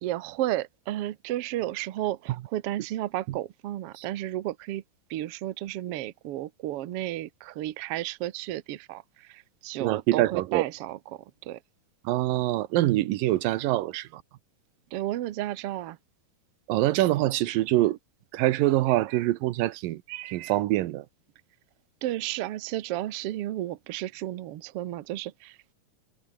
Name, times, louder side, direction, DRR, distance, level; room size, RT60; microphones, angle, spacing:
voice 1, 0.0-4.8 5.1-11.6 14.9-16.0 22.0-25.6, right 14 dB, 65° right, 1.5 m, -33 dB
voice 2, 9.8-10.6 12.1-14.2 16.7-18.0 18.3-21.1, right 16 dB, 90° right, 2.6 m, -25 dB
omnidirectional pair, 3.8 m